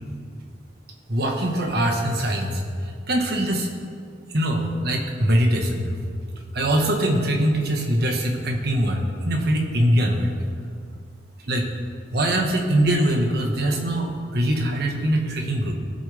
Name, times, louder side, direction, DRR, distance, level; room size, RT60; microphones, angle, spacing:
voice 1, 1.1-2.6 3.1-3.7 4.3-5.9 6.5-10.3 11.5-11.7 12.1-15.7, right 1 dB, 65° right, 2 dB, 1.5 m, -22 dB
18.5 x 6.7 x 3.5 m, 2.2 s
head